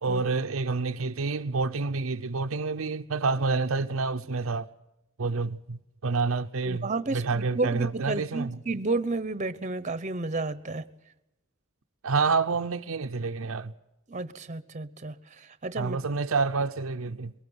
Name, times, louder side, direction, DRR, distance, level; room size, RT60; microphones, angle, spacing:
voice 1, 0.0-4.6 5.2-8.5 12.0-13.7 15.8-17.3, right 4 dB, 70° right, 0.7 m, -28 dB
voice 2, 6.6-10.9 14.1-16.0, right 3 dB, 35° right, 1.0 m, -31 dB
23.0 x 20.0 x 8.0 m
head